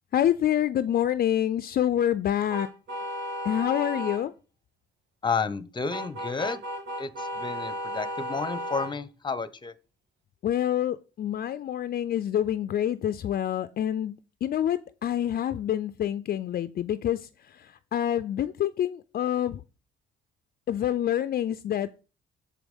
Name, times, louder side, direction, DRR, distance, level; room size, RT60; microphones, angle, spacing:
voice 1, 0.1-2.7 3.4-4.3 10.4-19.6 20.7-22.0, left 11 dB, 50° left, 0.4 m, -27 dB
sound 1, 2.5-4.2 5.9-8.9, equal, 70° right, 2.7 m, -34 dB
voice 2, 5.2-6.6 7.0-9.7, left 5 dB, 25° left, 0.7 m, -31 dB
6.9 x 4.7 x 5.3 m
cardioid pair, 90°, 20 cm